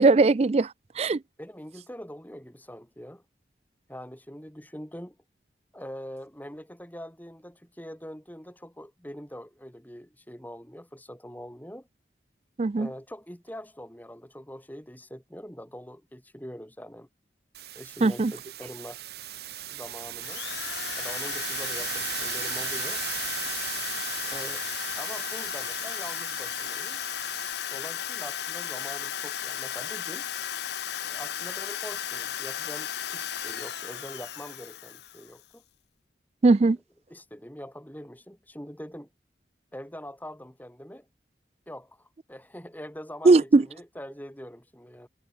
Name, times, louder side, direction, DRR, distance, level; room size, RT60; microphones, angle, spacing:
voice 1, 0.0-1.2 12.6-12.9 18.0-18.3 36.4-36.8 43.2-43.6, right 3 dB, 35° right, 0.4 m, -19 dB
voice 2, 1.4-3.2 3.9-5.2 5.7-11.9 12.7-17.1 17.7-19.0 19.7-20.4 21.0-23.1 24.2-24.7 25.0-27.0 27.7-30.3 31.0-35.6 36.6-36.7 37.1-39.1 39.7-41.1 41.7-45.1, equal, 10° left, 4.1 m, -43 dB
sound 1, 17.5-27.5, right 13 dB, 60° right, 1.1 m, -37 dB
Drill, 20.2-35.4, left 9 dB, 70° left, 1.0 m, -35 dB
head